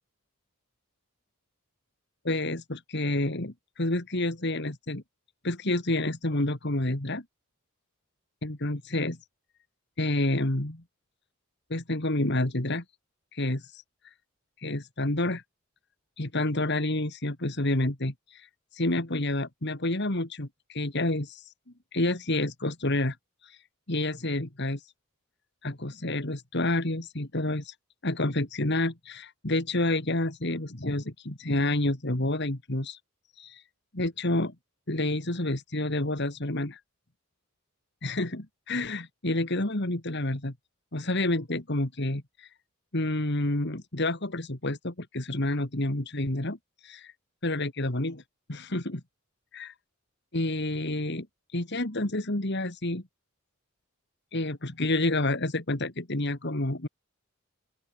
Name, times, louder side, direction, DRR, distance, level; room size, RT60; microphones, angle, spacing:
voice 1, 2.2-5.0 5.4-7.2 8.4-9.2 10.0-10.8 11.7-12.8 13.3-13.8 14.6-15.4 16.2-21.5 21.9-23.2 23.4-23.6 23.9-24.8 25.6-27.7 28.0-33.0 33.4-33.6 33.9-34.5 34.9-36.8 38.0-40.5 40.9-42.5 42.9-46.6 46.8-47.1 47.4-48.2 48.5-49.0 49.5-49.7 50.3-51.3 51.5-53.0 54.3-56.9, left 2 dB, 50° left, 2.4 m, -29 dB
open air
head